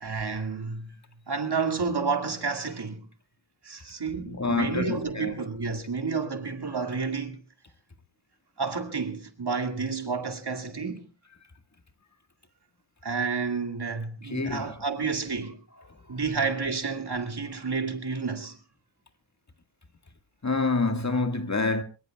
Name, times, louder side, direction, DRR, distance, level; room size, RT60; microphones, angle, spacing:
voice 1, 0.0-0.9 1.3-3.1 3.6-7.4 8.6-11.0 13.0-15.6 16.1-18.6, right 4 dB, 60° right, 2.2 m, -30 dB
voice 2, 4.2-5.5 14.2-14.8 15.8-16.2 20.4-21.8, left 3 dB, 35° left, 1.8 m, -28 dB
23.5 x 22.0 x 2.3 m
cardioid pair, 40°, 45 cm